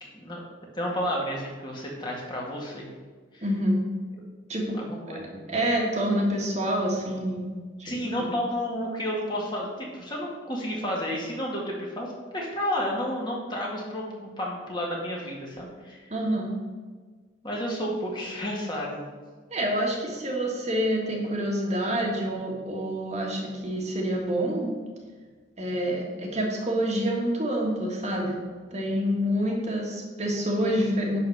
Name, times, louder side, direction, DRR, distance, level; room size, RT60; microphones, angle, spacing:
voice 1, 0.7-3.0 3.3-3.4 4.7-5.3 7.8-16.0 17.4-19.0, equal, 25° left, -3 dB, 2.0 m, -31 dB
voice 2, 3.4-3.9 4.5-4.8 5.1-7.5 7.8-8.3 16.1-16.5 19.5-24.7 25.6-28.4 28.7-31.2, equal, 35° right, -1 dB, 1.7 m, -27 dB
11.0 x 4.2 x 6.4 m, 1.4 s
head